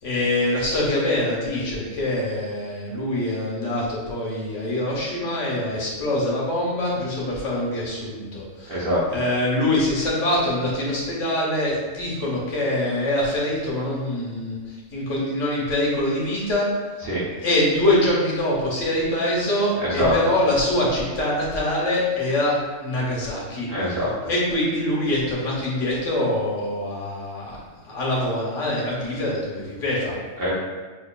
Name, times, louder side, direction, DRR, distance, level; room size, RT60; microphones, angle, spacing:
voice 1, 0.0-8.8 9.1-16.7 17.4-23.7 24.3-27.6 27.8-30.1, left 1 dB, 75° left, -5 dB, 1.3 m, -24 dB
voice 2, 8.7-9.2 17.0-17.2 19.8-20.1 23.7-24.1 30.4-30.5, equal, 50° right, -8 dB, 1.0 m, -24 dB
6.3 x 2.6 x 2.2 m, 1.3 s
omnidirectional pair, 1.3 m